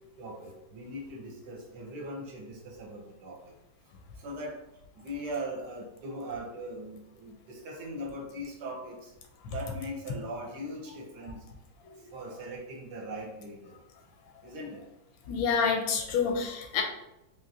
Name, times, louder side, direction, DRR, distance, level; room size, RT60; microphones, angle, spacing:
voice 1, 0.2-3.5 4.2-4.6 4.9-9.1 9.4-11.5 12.0-13.8 14.4-14.8, right 1 dB, 70° right, 1 dB, 1.2 m, -40 dB
voice 2, 15.3-16.8, left 6 dB, 85° left, 3 dB, 1.4 m, -27 dB
3.8 x 3.0 x 2.6 m, 0.91 s
omnidirectional pair, 2.1 m